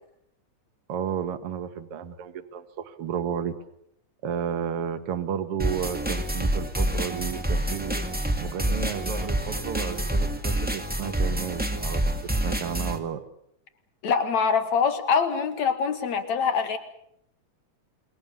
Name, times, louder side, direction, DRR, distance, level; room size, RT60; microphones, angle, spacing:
voice 1, 0.9-3.5 4.2-8.0 8.4-12.0 12.4-13.2, right 8 dB, 55° right, 8 dB, 2.2 m, -32 dB
sound 1, 5.6-13.0, right 1 dB, 5° right, 1.6 m, -27 dB
voice 2, 14.0-16.8, left 6 dB, 70° left, 8 dB, 3.3 m, -24 dB
28.0 x 22.5 x 7.0 m, 0.73 s
omnidirectional pair, 3.3 m